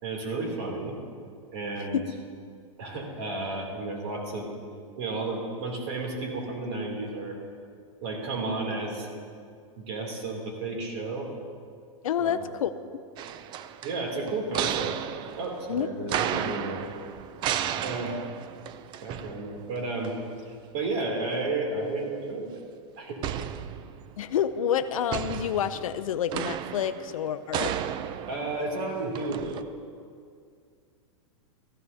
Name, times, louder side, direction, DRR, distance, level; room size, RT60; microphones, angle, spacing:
voice 1, 0.0-1.0 1.5-2.0 2.8-4.5 5.0-7.4 8.0-9.1 9.8-11.3 12.2-12.4 13.8-14.9 15.4-16.8 17.8-18.2 19.0-20.1 20.4-22.6 23.0-23.2 28.3-29.7, right 3 dB, 55° right, 0 dB, 2.8 m, -32 dB
voice 2, 12.0-12.7 15.7-15.9 24.2-27.8, left 9 dB, 85° left, 11 dB, 0.5 m, -28 dB
sound 1, 13.2-19.8 20.0-20.1 23.2-24.3 25.1-29.6, right 10 dB, 25° right, 0.4 m, -33 dB
16.0 x 14.5 x 2.7 m, 2.2 s
hypercardioid pair, 135°, 17 cm